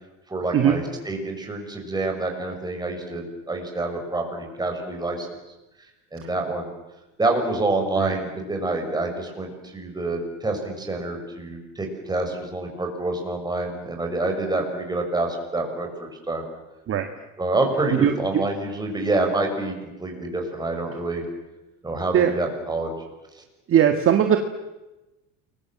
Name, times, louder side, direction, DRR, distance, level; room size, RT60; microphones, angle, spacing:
voice 1, 0.3-5.3 6.1-6.7 7.2-16.4 17.4-19.7 20.0-21.2 21.8-22.9, right 2 dB, 10° right, 2 dB, 6.1 m, -27 dB
voice 2, 23.7-24.4, right 9 dB, 35° right, 6 dB, 1.8 m, -18 dB
28.5 x 22.5 x 7.6 m, 1.0 s
cardioid pair, 135°, 36 cm